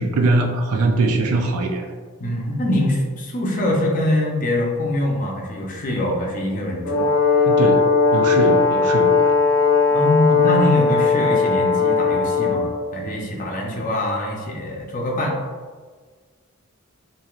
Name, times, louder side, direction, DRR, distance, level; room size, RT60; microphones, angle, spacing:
voice 1, 0.0-1.9 7.5-7.8 8.1-9.3, right 2 dB, 80° right, 3 dB, 0.4 m, -21 dB
voice 2, 2.2-7.1 9.9-12.7 12.9-15.4, left 1 dB, 35° left, -1 dB, 0.5 m, -23 dB
Brass instrument, 6.8-12.8, left 4 dB, 75° left, 0.7 m, -18 dB
3.1 x 2.6 x 2.3 m, 1.5 s
head